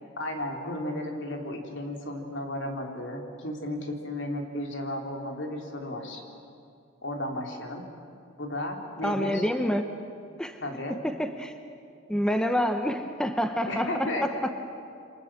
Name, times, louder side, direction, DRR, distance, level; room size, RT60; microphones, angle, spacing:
voice 1, 0.2-6.2 7.0-7.9 8.4-9.4 10.6-11.0 13.7-14.3, left 1 dB, 65° left, 2 dB, 3.5 m, -34 dB
voice 2, 9.0-9.9 10.4-10.6 11.0-11.5 12.1-14.3, equal, 5° left, 7 dB, 0.9 m, -27 dB
28.5 x 25.0 x 7.6 m, 2.5 s
head